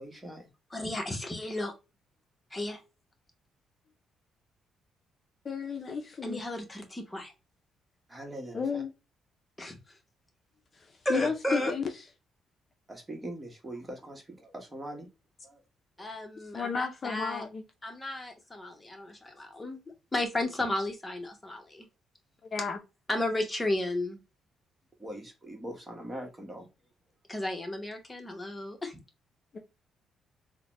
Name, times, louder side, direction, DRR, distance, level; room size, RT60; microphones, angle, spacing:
voice 1, 0.0-0.5 8.1-8.8 12.9-15.1 15.4-15.6 25.0-26.7, right 1 dB, 20° right, 1.2 m, -42 dB
voice 2, 0.7-1.7 2.5-2.8 6.2-7.3 9.6-9.9 11.0-11.7 16.0-17.4 17.8-19.8 20.1-21.9 23.1-24.2 27.3-29.0, left 1 dB, 20° left, 1.0 m, -33 dB
voice 3, 5.4-6.4 8.5-8.9 11.1-11.8 16.5-17.6 22.5-22.8 29.5-29.6, left 5 dB, 40° left, 0.6 m, -32 dB
3.9 x 2.1 x 2.9 m
cardioid pair, 90°, 0 cm